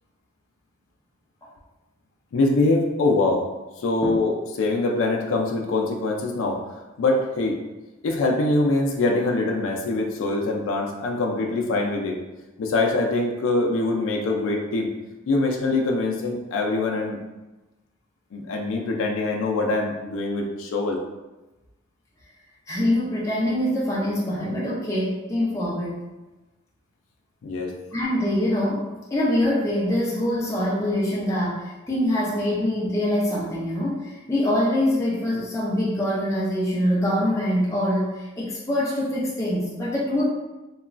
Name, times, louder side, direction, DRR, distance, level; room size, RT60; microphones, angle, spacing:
voice 1, 2.3-3.4 3.8-7.6 8.0-12.2 12.6-14.9 15.3-17.2 18.3-21.0 27.4-27.7, left 2 dB, 80° left, 0 dB, 0.4 m, -23 dB
voice 2, 22.7-26.0 27.9-40.3, left 1 dB, 15° left, -5 dB, 0.4 m, -24 dB
2.9 x 2.3 x 2.4 m, 1.1 s
head